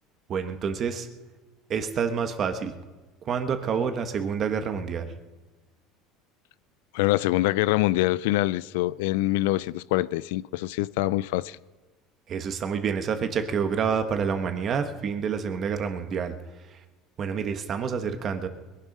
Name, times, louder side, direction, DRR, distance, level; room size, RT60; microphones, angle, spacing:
voice 1, 0.3-1.1 1.7-2.7 3.3-5.1 12.3-16.3 17.2-18.5, right 6 dB, 35° right, 1.3 m, -28 dB
voice 2, 6.9-11.6, left 17 dB, 85° left, 0.4 m, -25 dB
22.0 x 11.5 x 5.4 m
cardioid pair, 155°, 0 cm